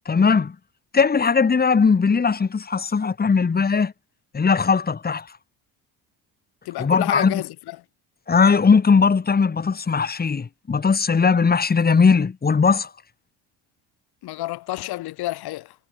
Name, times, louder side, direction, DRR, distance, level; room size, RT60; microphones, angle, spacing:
voice 1, 0.1-0.6 0.9-3.9 4.3-5.3 6.8-7.4 8.3-12.9, left 5 dB, 25° left, 2.5 m, -19 dB
voice 2, 6.7-7.8 14.2-15.7, left 17 dB, 75° left, 5.6 m, -29 dB
cardioid pair, 105°, 38 cm